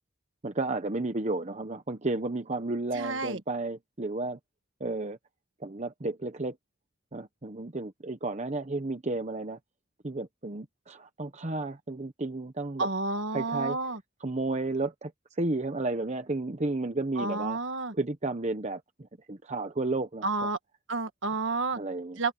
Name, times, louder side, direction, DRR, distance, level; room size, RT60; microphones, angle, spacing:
voice 1, 0.4-4.4 4.8-5.2 5.6-6.6 7.1-9.6 10.0-12.9 13.3-13.8 14.2-17.6 17.9-20.5 21.7-22.2, right 2 dB, 35° right, 1.0 m, -32 dB
voice 2, 2.9-3.4 12.8-14.0 17.2-17.9 20.2-20.6 20.9-21.8 22.2-22.3, right 3 dB, 65° right, 1.7 m, -30 dB
head